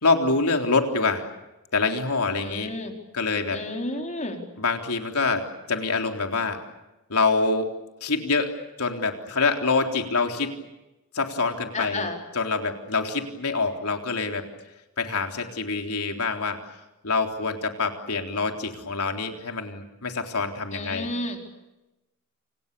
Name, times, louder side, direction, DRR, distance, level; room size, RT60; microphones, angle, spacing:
voice 1, 0.0-1.3 1.7-2.7 3.1-3.6 4.6-6.6 7.1-7.7 8.0-8.5 8.8-10.6 11.1-12.1 12.3-14.4 15.0-16.6 17.0-21.1, left 4 dB, 75° left, 4 dB, 3.7 m, -25 dB
voice 2, 2.4-2.9 3.5-4.4 11.7-12.2 20.7-21.4, left 2 dB, 35° left, 3 dB, 4.4 m, -31 dB
29.0 x 28.5 x 6.9 m, 1.0 s
head